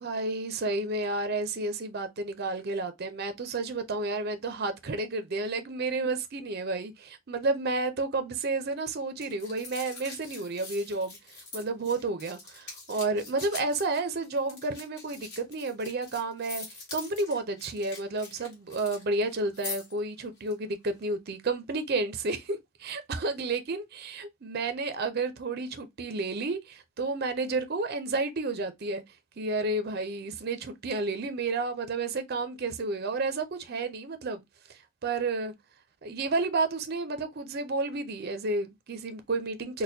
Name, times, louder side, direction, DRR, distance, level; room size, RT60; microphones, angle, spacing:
voice 1, 0.0-16.7 16.9-29.0 29.4-34.4 34.7-35.5 36.0-39.8, right 3 dB, 45° right, 0.5 m, -31 dB
sound 1, 9.2-19.0 19.3-20.0 20.4-20.5, left 3 dB, 50° left, 1.6 m, -43 dB
4.2 x 2.2 x 2.6 m
head